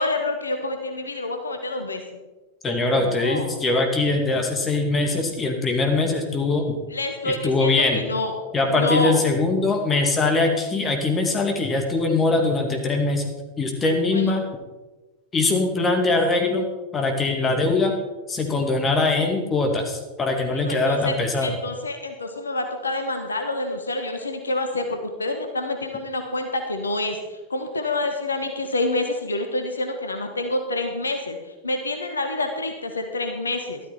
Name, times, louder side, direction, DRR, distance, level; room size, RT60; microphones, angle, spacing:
voice 1, 0.0-2.2 2.9-3.6 6.9-8.4 8.7-9.2 14.1-14.3 20.5-21.1 21.4-33.8, left 2 dB, 75° left, 5 dB, 1.3 m, -27 dB
voice 2, 2.6-6.8 7.2-8.0 8.5-13.2 13.6-14.5 15.3-16.6 16.9-17.9 18.3-21.6, left 3 dB, 20° left, 3 dB, 2.4 m, -22 dB
12.5 x 12.5 x 4.3 m, 1.2 s
figure-of-eight pair, 90°, 0 cm